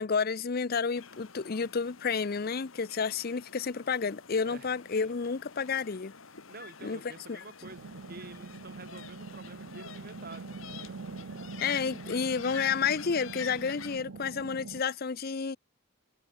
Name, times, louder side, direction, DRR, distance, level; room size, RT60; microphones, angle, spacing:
voice 1, 0.0-6.1 6.8-7.0 7.3-7.4 11.6-15.6, left 5 dB, 45° left, 0.5 m, -30 dB
sound 1, 0.9-14.0, left 7 dB, 75° left, 1.8 m, -48 dB
voice 2, 6.5-11.0, right 3 dB, 45° right, 2.9 m, -49 dB
sound 2, 7.6-14.8, right 4 dB, 80° right, 0.7 m, -44 dB
head